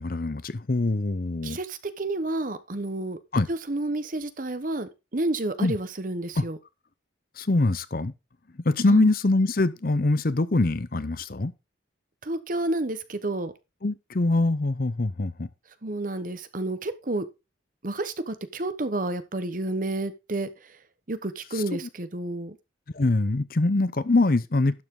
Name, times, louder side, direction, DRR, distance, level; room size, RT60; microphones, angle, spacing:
voice 1, 0.0-1.6 3.3-3.5 5.6-5.8 6.4-6.5 7.4-8.1 8.6-11.5 13.8-15.5 21.5-21.9 22.9-24.8, left 2 dB, 50° left, 0.7 m, -24 dB
voice 2, 1.4-3.2 3.5-6.6 8.9-9.1 12.2-13.5 15.8-17.2 17.8-20.5 21.1-22.6, right 2 dB, 45° right, 1.1 m, -30 dB
12.0 x 7.3 x 3.8 m
head